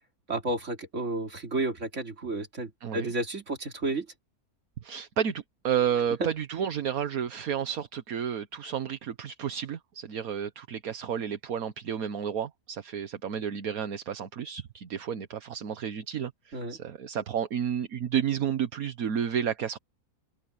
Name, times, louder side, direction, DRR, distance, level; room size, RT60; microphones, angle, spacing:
voice 1, 0.3-4.1 16.5-16.8, right 2 dB, 50° right, 3.2 m, -32 dB
voice 2, 2.8-3.1 4.8-19.8, right 8 dB, 70° right, 1.5 m, -31 dB
omnidirectional pair, 1.6 m